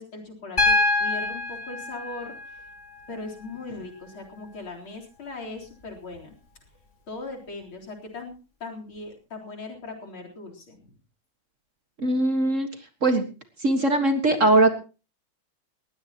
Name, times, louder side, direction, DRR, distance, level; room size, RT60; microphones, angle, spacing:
voice 1, 0.0-2.4 3.1-6.3 7.1-8.3 8.6-10.9, left 3 dB, 70° left, 0 dB, 4.6 m, -39 dB
Piano, 0.6-4.6 6.1-6.2, left 2 dB, 35° left, 3.2 m, -27 dB
voice 2, 12.0-12.7 13.0-13.2 13.6-14.7, right 2 dB, 40° right, 7 dB, 1.8 m, -20 dB
20.5 x 16.5 x 3.0 m, 0.32 s
omnidirectional pair, 2.3 m